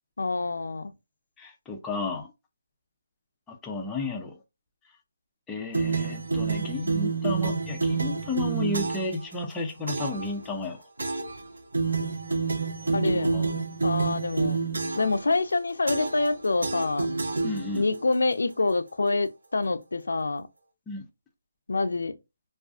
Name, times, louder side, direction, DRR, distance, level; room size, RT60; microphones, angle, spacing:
voice 1, 0.2-0.9 12.9-13.4 13.8-14.6 14.9-17.1 17.8-20.5 21.7-22.1, left 3 dB, 85° left, 0.3 m, -26 dB
voice 2, 1.4-2.3 3.5-4.3 5.5-10.8 13.0-13.5 17.4-17.9 20.9-21.0, left 3 dB, 10° left, 0.4 m, -33 dB
sound 1, 5.7-9.2 9.9-10.3 11.0-11.4 11.7-15.2 15.9-16.3 16.6-18.0, right 4 dB, 90° right, 0.5 m, -28 dB
2.4 x 2.3 x 2.3 m
hypercardioid pair, 170°, 0 cm